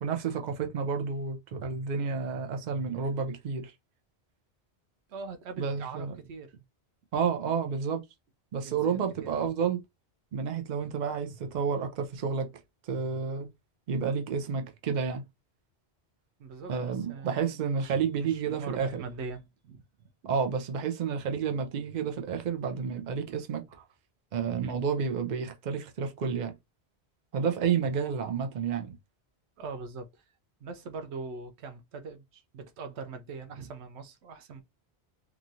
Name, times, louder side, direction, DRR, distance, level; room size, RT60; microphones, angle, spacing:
voice 1, 0.0-3.7 5.6-6.1 7.1-8.0 8.5-9.8 10.3-12.5 12.9-13.5 13.9-15.2 16.7-19.0 20.2-23.7 24.3-26.6 27.3-29.0, right 6 dB, 50° right, 0.7 m, -30 dB
voice 2, 5.1-6.6 8.6-9.5 16.4-20.1 24.6-24.8 29.6-30.2 30.6-34.6, right 4 dB, 85° right, 0.9 m, -42 dB
3.0 x 2.4 x 2.6 m
omnidirectional pair, 1.1 m